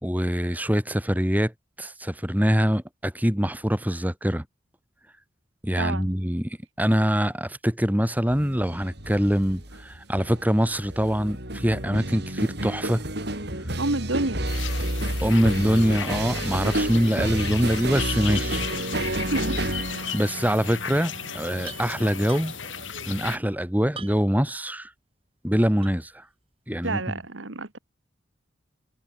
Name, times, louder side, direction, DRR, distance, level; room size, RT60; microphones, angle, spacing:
voice 1, 0.0-1.5 1.8-4.4 5.6-13.0 15.2-18.6 20.1-22.5 23.1-24.9 25.4-26.2 26.7-27.0, equal, 10° right, 3.4 m, -24 dB
voice 2, 5.8-6.1 13.8-14.4 19.3-19.7 26.8-27.8, right 2 dB, 85° right, 2.0 m, -29 dB
sound 1, 8.3-23.4, right 1 dB, 60° right, 7.5 m, -31 dB
sound 2, 14.5-23.4, left 7 dB, 85° left, 6.5 m, -35 dB
sound 3, 20.1-20.3 20.6-20.7 21.6-22.8 24.0-24.5 25.0-25.1 25.8-26.2, right 6 dB, 30° right, 5.8 m, -43 dB
head